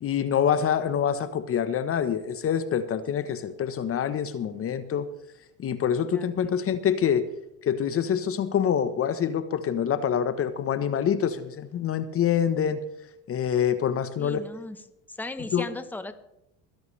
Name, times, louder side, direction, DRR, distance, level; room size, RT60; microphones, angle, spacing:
voice 1, 0.0-5.1 5.6-7.3 7.6-12.8 13.3-14.4 15.5-15.6, left 8 dB, 45° left, 12 dB, 1.1 m, -26 dB
voice 2, 6.1-6.5 14.2-14.8 15.1-16.1, left 2 dB, 5° left, 10 dB, 1.1 m, -37 dB
22.0 x 10.5 x 3.3 m, 0.84 s
supercardioid pair, 85°, 31 cm